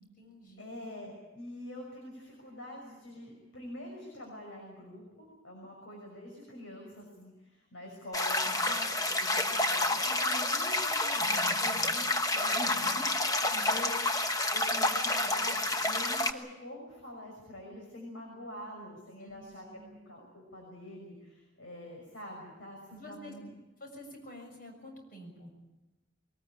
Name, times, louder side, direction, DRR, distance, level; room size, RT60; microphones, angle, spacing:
voice 1, 0.0-1.1 11.2-11.9 13.4-13.8 19.2-20.0 22.9-23.3 23.8-25.5, equal, 45° left, 2 dB, 6.9 m, -50 dB
voice 2, 0.6-12.1 12.3-13.9 14.3-19.6 20.1-23.5, left 1 dB, 90° left, 0 dB, 6.1 m, -45 dB
sound 1, 8.1-16.3, left 2 dB, 20° left, 1.1 m, -29 dB
22.5 x 19.5 x 8.7 m, 1.1 s
head